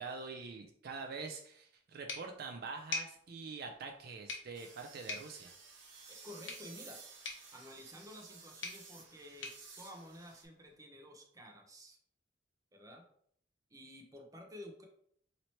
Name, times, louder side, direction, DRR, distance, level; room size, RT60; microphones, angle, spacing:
voice 1, 0.0-5.5, right 4 dB, 55° right, 4 dB, 0.4 m, -45 dB
sound 1, 2.1-10.8, left 3 dB, 80° left, 0.9 m, -47 dB
sound 2, 4.5-10.4, right 4 dB, 80° right, 1.0 m, -55 dB
voice 2, 6.1-7.0 7.5-12.0 12.7-13.0 13.7-14.9, left 1 dB, 20° right, 1 dB, 0.7 m, -52 dB
3.1 x 2.8 x 4.2 m, 0.65 s
head